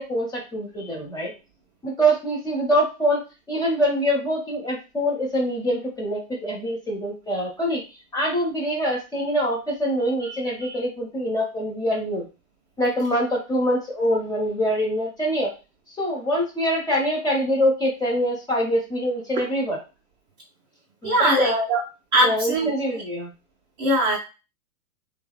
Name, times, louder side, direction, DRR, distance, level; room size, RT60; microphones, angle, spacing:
voice 1, 0.0-1.3 1.8-3.2 3.5-7.8 8.1-12.2 12.8-15.5 16.0-19.8 21.0-21.7 22.2-23.3, equal, 10° left, -3 dB, 0.7 m, -24 dB
voice 2, 21.0-21.8 22.1-23.0 23.8-24.2, right 1 dB, 30° right, -4 dB, 0.4 m, -21 dB
2.7 x 2.0 x 2.3 m, 0.30 s
hypercardioid pair, 120°, 44 cm